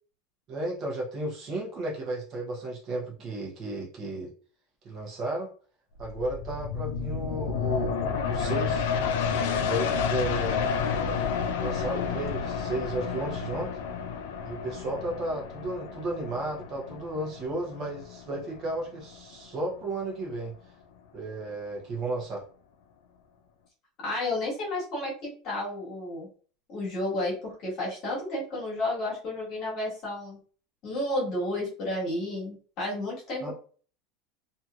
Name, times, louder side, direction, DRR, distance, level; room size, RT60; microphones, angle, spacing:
voice 1, 0.5-4.3 4.8-5.5 6.0-8.9 9.3-10.7 11.6-13.8 14.4-20.5 21.1-22.4 33.4-33.5, right 2 dB, 30° right, -2 dB, 0.8 m, -33 dB
sound 1, 6.0-19.3 19.7-19.8, left 6 dB, 75° left, 0.5 m, -30 dB
voice 2, 24.0-26.3 26.7-30.4 30.8-33.5, left 1 dB, 35° left, -4 dB, 1.4 m, -31 dB
2.9 x 2.6 x 2.4 m, 0.42 s
supercardioid pair, 180°, 0 cm